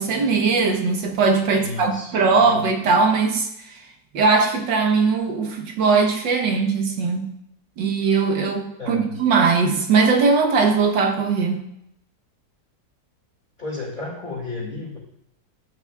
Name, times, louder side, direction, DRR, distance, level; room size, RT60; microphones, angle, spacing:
voice 1, 0.0-3.8 4.1-7.3 7.8-11.6, right 4 dB, 80° right, 4 dB, 1.8 m, -20 dB
voice 2, 1.6-2.6 8.8-9.2 13.6-15.0, left 3 dB, 30° left, -7 dB, 2.4 m, -33 dB
13.0 x 8.3 x 2.4 m, 0.78 s
omnidirectional pair, 1.9 m